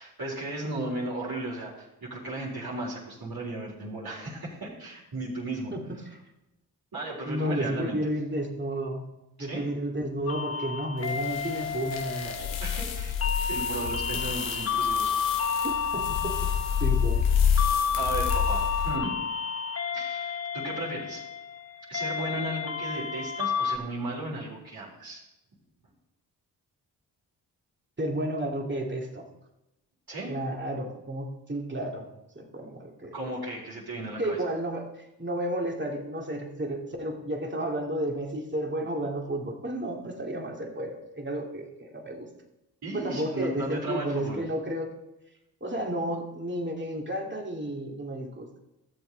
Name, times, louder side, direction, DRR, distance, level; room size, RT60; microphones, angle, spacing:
voice 1, 0.0-5.7 6.9-8.0 9.4-9.7 12.6-13.2 13.5-15.1 18.0-19.2 19.9-21.2 21.9-25.2 30.1-30.3 33.1-34.4 42.8-44.4, right 2 dB, 55° right, -7 dB, 3.8 m, -35 dB
voice 2, 7.3-9.0 9.4-12.6 15.6-16.3 16.8-17.2 28.0-29.3 30.3-32.1 32.4-33.1 34.2-34.9 35.2-42.3 42.9-44.9 45.6-48.5, right 1 dB, 25° right, 1 dB, 2.5 m, -32 dB
sound 1, 10.3-23.8, left 6 dB, 30° left, 1.0 m, -31 dB
sound 2, 11.1-19.0, left 7 dB, 80° left, 1.2 m, -29 dB
13.5 x 7.2 x 4.0 m, 0.94 s
supercardioid pair, 45°, 44 cm